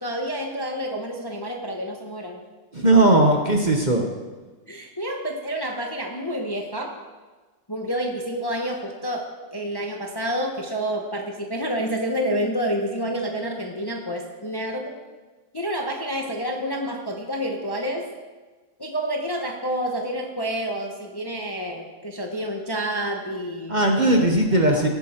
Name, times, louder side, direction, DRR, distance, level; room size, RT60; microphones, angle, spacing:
voice 1, 0.0-2.4 4.7-7.0 7.7-14.9 15.5-18.1 18.8-23.8 24.0-24.3 24.7-24.9, equal, 20° left, 2 dB, 0.8 m, -29 dB
voice 2, 2.7-4.0 23.7-24.9, right 2 dB, 35° right, 2 dB, 1.0 m, -18 dB
17.5 x 8.9 x 4.4 m, 1.3 s
omnidirectional pair, 1.7 m